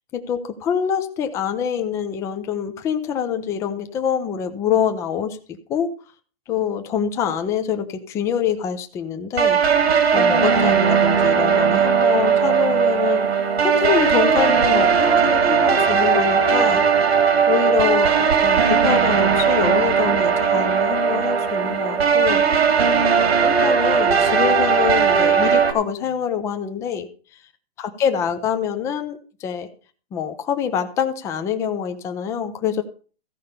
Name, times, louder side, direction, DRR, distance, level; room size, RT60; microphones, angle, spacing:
voice 1, 0.1-5.9 6.5-9.6 10.1-13.2 13.6-16.8 17.5-22.5 23.2-27.1 27.8-29.7 30.1-32.8, left 8 dB, 10° left, 7 dB, 0.6 m, -25 dB
sound 1, 9.4-25.7, right 6 dB, 90° right, 2.5 m, -18 dB
14.5 x 5.5 x 6.6 m, 0.39 s
hypercardioid pair, 165°, 31 cm